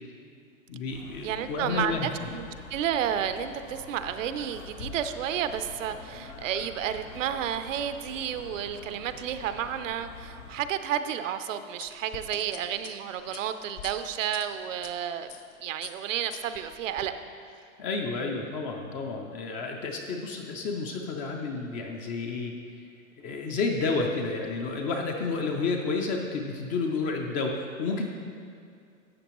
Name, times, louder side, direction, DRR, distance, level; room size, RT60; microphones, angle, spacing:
voice 1, 0.7-2.1 17.8-22.6 23.2-28.1, left 4 dB, 20° left, 2 dB, 0.4 m, -30 dB
sound 1, 0.9-10.7, left 4 dB, 90° left, 2.0 m, -45 dB
voice 2, 1.2-15.3 15.6-17.1, right 9 dB, 65° right, 10 dB, 0.7 m, -31 dB
sound 2, 11.8-14.9 15.3-15.5 15.8-17.1, left 9 dB, 50° left, 0.7 m, -45 dB
12.5 x 7.7 x 3.0 m, 2.3 s
hypercardioid pair, 135°, 41 cm